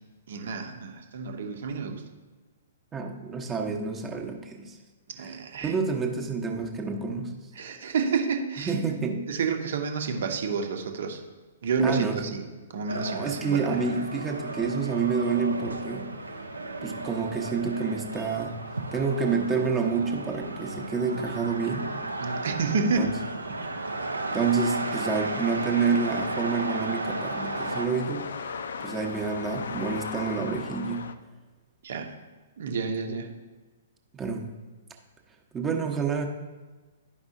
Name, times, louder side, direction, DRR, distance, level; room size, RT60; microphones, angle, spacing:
voice 1, 0.3-2.0 5.2-5.7 7.6-8.7 9.3-11.2 11.6-12.5 12.7-13.8 22.2-23.1 31.8-32.1 32.6-33.3, right 5 dB, 55° right, 4 dB, 1.0 m, -29 dB
voice 2, 2.9-4.8 5.2-5.4 5.6-7.3 8.6-9.3 11.8-12.3 12.9-16.1 16.8-18.5 18.9-21.8 23.0-23.1 24.3-28.5 28.8-31.1 34.1-34.5 35.5-36.3, right 5 dB, 15° right, 2 dB, 0.9 m, -28 dB
sound 1, 12.9-27.8, right 2 dB, 80° right, 0.7 m, -34 dB
sound 2, 21.8-31.2, left 5 dB, 60° left, 0.4 m, -39 dB
11.5 x 5.3 x 2.7 m, 1.3 s
figure-of-eight pair, 115°, 0 cm